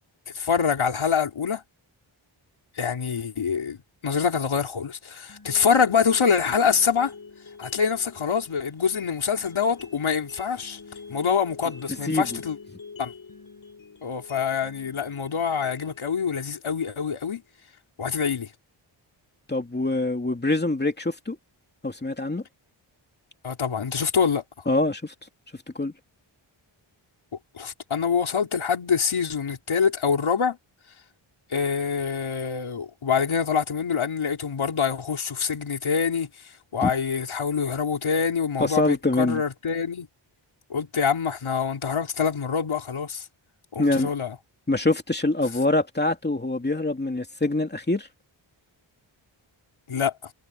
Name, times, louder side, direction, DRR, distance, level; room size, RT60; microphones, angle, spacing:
voice 1, 0.3-1.6 2.8-7.1 7.6-10.8 11.1-12.6 13.0-13.1 14.0-17.4 18.0-18.5 23.4-24.4 27.5-30.6 31.5-40.1 40.7-43.3 43.7-44.4 49.9-50.1, left 6 dB, 75° left, 3.7 m, -25 dB
sound 1, 5.3-17.3, left 4 dB, 45° left, 7.7 m, -45 dB
voice 2, 19.5-21.4 21.8-22.4 24.7-25.1 25.7-25.9 36.8-36.9 38.6-39.4 43.8-44.1 44.7-48.1, left 2 dB, 20° left, 2.7 m, -24 dB
wide cardioid pair, 145°, 48 cm